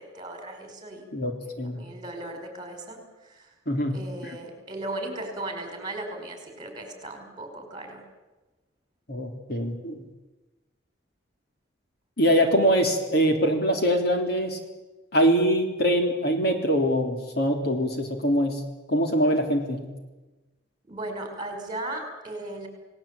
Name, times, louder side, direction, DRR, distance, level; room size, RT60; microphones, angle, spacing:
voice 1, 0.0-1.0 1.4-3.5 3.9-8.0 20.9-22.7, right 2 dB, 25° right, 5 dB, 5.7 m, -37 dB
voice 2, 1.1-1.8 3.7-4.0 9.1-10.0 12.2-14.6 15.1-18.6 18.9-19.9, equal, 55° left, 4 dB, 3.6 m, -23 dB
28.5 x 18.5 x 8.7 m, 1.1 s
head